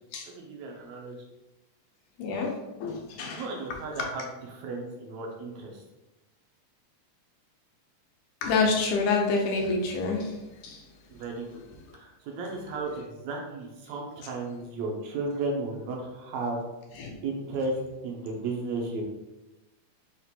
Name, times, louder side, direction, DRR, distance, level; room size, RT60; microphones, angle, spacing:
voice 1, 0.3-1.2 3.2-4.2 4.5-5.8 11.1-11.6 11.9-16.6 17.2-17.7 18.0-19.0, right 3 dB, 80° right, 0 dB, 1.8 m, -34 dB
voice 2, 2.2-2.6 2.8-3.5 4.0-4.1 8.4-10.8 11.9-12.0 17.0-17.2, left 4 dB, 80° left, 0 dB, 2.1 m, -27 dB
5.8 x 2.5 x 2.7 m, 1.0 s
omnidirectional pair, 3.4 m